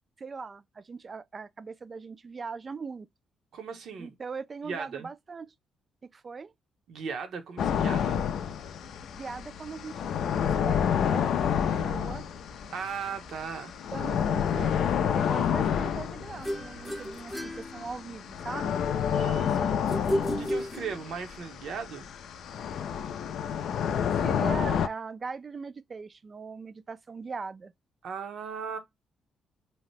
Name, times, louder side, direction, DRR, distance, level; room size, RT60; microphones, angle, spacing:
voice 1, 0.2-3.1 4.0-5.5 6.1-6.5 9.1-10.3 10.6-12.2 13.9-19.8 24.1-27.7, right 4 dB, 35° right, 0.3 m, -40 dB
voice 2, 3.5-4.1 4.6-5.1 6.9-8.2 12.7-13.8 19.1-22.1 28.0-28.8, right 6 dB, 70° right, 0.8 m, -38 dB
sound 1, 7.6-24.9, left 8 dB, 70° left, 0.4 m, -29 dB
sound 2, 16.4-18.4 19.9-21.4, equal, 5° left, 0.6 m, -33 dB
2.8 x 2.1 x 3.1 m
cardioid pair, 90°, 0 cm